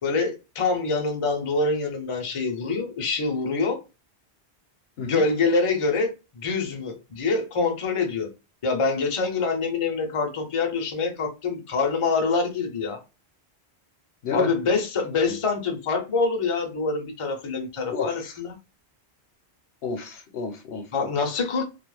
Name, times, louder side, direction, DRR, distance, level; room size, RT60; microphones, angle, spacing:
voice 1, 0.0-3.8 5.0-8.3 8.6-13.0 14.3-18.6 20.9-21.6, left 4 dB, 40° left, 0.5 m, -25 dB
voice 2, 17.9-18.3 19.8-20.8, left 4 dB, 70° left, 0.8 m, -30 dB
2.3 x 2.1 x 3.1 m
omnidirectional pair, 1.1 m